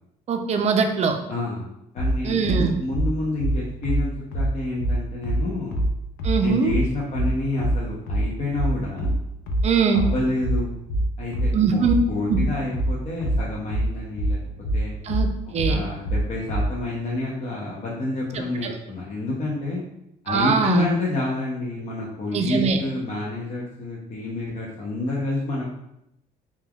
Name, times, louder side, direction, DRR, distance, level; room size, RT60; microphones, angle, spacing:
voice 1, 0.3-1.2 2.2-2.7 6.2-6.7 9.6-10.1 11.5-11.9 12.3-12.4 15.0-15.8 18.3-18.8 20.3-20.9 22.3-22.8, right 6 dB, 40° right, 5 dB, 0.4 m, -22 dB
voice 2, 1.3-1.7 1.9-2.4 2.8-5.8 6.4-9.1 9.9-10.8 11.2-11.8 12.1-14.4 14.7-14.9 15.7-19.8 20.2-25.7, left 2 dB, 40° left, -4 dB, 0.6 m, -28 dB
sound 1, 2.0-16.8, right 1 dB, 90° left, 0.5 m, -24 dB
3.2 x 2.2 x 2.2 m, 0.81 s
cardioid pair, 110°, 17 cm